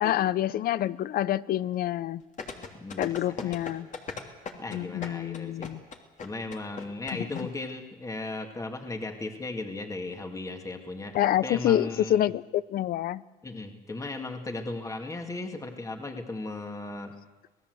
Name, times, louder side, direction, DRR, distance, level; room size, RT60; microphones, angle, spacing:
voice 1, 0.0-2.2 3.0-3.9 4.7-5.8 7.2-7.3 11.1-13.2, left 12 dB, 60° left, 0.7 m, -27 dB
sound 1, 2.4-7.4 7.7-7.8, left 5 dB, 45° left, 3.0 m, -38 dB
voice 2, 4.6-5.7 6.2-11.2 11.4-12.3 13.4-17.1, left 2 dB, 20° left, 2.3 m, -36 dB
26.5 x 18.0 x 8.0 m
cardioid pair, 110°, 17 cm